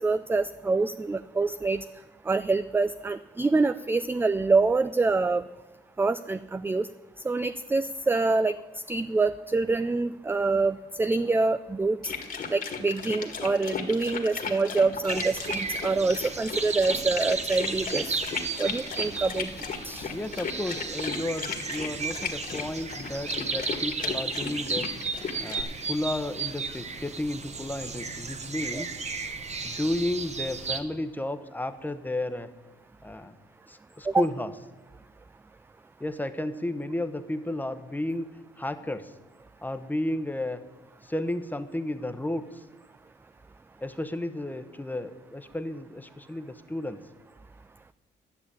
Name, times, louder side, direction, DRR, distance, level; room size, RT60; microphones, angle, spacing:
voice 1, 0.0-1.8 2.3-5.5 6.0-6.9 7.2-8.6 8.9-12.0 12.5-18.0 18.6-19.5 19.8-20.1 28.7-28.8 34.1-34.3, right 3 dB, 10° right, 13 dB, 0.3 m, -26 dB
sound 1, 12.0-25.6, left 5 dB, 45° left, 1.8 m, -35 dB
sound 2, 15.1-30.8, right 4 dB, 35° right, 1.1 m, -34 dB
voice 2, 20.1-24.9 25.3-29.0 29.6-32.5 33.0-33.3 33.7-34.5 36.0-39.2 39.6-40.6 41.0-42.7 43.8-47.0, left 1 dB, 10° left, 10 dB, 0.9 m, -33 dB
11.5 x 7.1 x 8.2 m, 1.1 s
cardioid pair, 90°, 20 cm